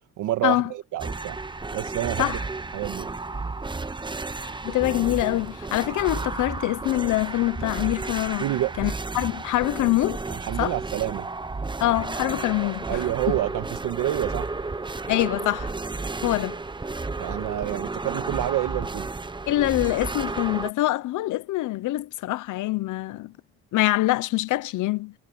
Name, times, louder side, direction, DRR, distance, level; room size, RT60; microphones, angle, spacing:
voice 1, 0.2-1.4 1.7-2.4 2.7-3.1 8.4-8.7 10.3-11.3 12.9-14.5 17.2-19.1, right 14 dB, 85° right, 1.6 m, -28 dB
sound 1, 1.0-20.7, right 3 dB, 15° right, 1.0 m, -32 dB
voice 2, 4.6-8.5 8.8-10.2 10.6-10.8 11.8-13.0 15.1-15.7 16.2-16.6 19.5-23.3 23.7-25.1, left 17 dB, 80° left, 0.8 m, -25 dB
cardioid pair, 90°, 30 cm